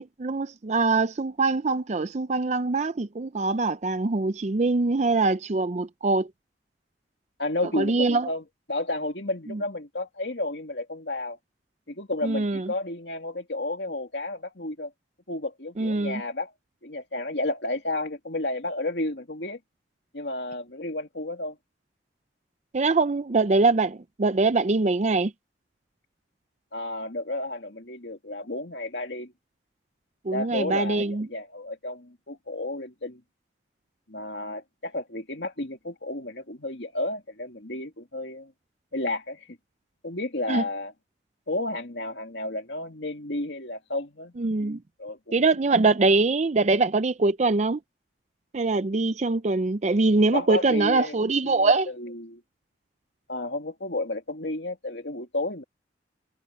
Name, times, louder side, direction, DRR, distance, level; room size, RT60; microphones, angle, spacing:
voice 1, 0.0-6.3 7.7-8.3 9.5-9.6 12.2-12.7 15.8-16.2 22.7-25.3 30.2-31.3 40.5-40.6 44.4-44.8 45.3-47.8 48.5-51.9, right 3 dB, 40° right, 0.5 m, -23 dB
voice 2, 7.4-8.4 8.7-11.4 11.9-14.9 15.3-16.5 16.8-19.6 20.1-21.6 26.7-29.3 30.3-33.2 34.1-38.5 38.9-39.6 40.0-40.9 41.5-44.3 45.0-45.3 50.3-51.2 51.4-51.7 52.0-52.4 53.3-55.6, left 2 dB, 70° left, 2.7 m, -32 dB
head